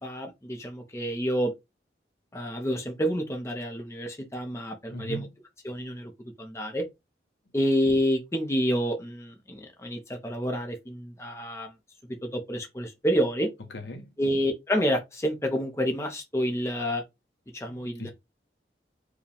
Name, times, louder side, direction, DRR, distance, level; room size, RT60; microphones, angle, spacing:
voice 1, 0.0-1.5 2.3-5.3 5.6-6.1 6.4-6.8 7.5-11.7 12.2-13.5 14.2-17.0 17.5-18.1, equal, 15° left, 0.6 m, -28 dB
voice 2, 4.9-5.3 13.7-14.1 17.7-18.1, equal, 80° left, 0.9 m, -39 dB
4.8 x 2.3 x 3.2 m
head